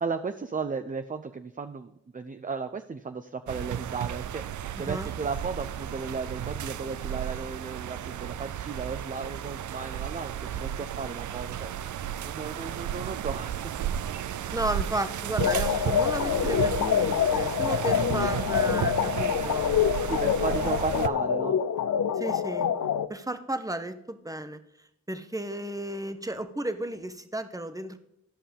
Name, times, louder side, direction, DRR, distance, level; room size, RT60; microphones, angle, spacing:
voice 1, 0.0-12.0 12.2-13.7 20.1-21.6, right 5 dB, 30° right, 9 dB, 0.6 m, -35 dB
sound 1, 3.5-21.1, right 10 dB, 80° right, 0.5 m, -33 dB
voice 2, 4.7-5.1 14.5-19.9 22.2-22.7 23.1-24.6 25.1-28.0, right 1 dB, 10° right, 10 dB, 1.0 m, -33 dB
sound 2, 15.4-23.1, left 8 dB, 75° left, 0.5 m, -26 dB
12.5 x 5.5 x 5.2 m, 0.82 s
cardioid pair, 45°, 29 cm